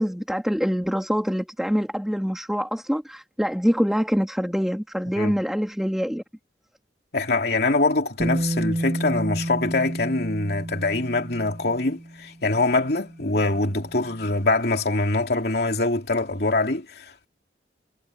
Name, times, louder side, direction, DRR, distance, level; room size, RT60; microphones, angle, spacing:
voice 1, 0.0-6.2, equal, ahead, 3.1 m, -25 dB
voice 2, 7.1-17.3, left 2 dB, 60° left, 3.1 m, -24 dB
Bass guitar, 8.2-14.2, right 1 dB, 25° right, 2.5 m, -31 dB
head